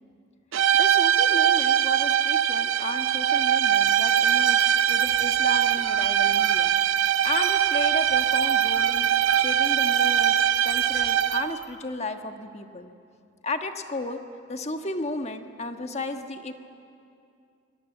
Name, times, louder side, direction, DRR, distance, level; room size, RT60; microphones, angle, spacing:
sound 1, 0.5-11.6, right 9 dB, 85° right, 0.6 m, -22 dB
voice 1, 0.8-6.8 7.2-9.1 9.3-10.4 10.6-12.9 13.4-14.2 14.5-16.5, left 2 dB, 35° left, 6 dB, 1.4 m, -34 dB
sound 2, 3.7-11.6, right 4 dB, 60° right, 3.1 m, -44 dB
25.5 x 20.5 x 9.0 m, 2.5 s
head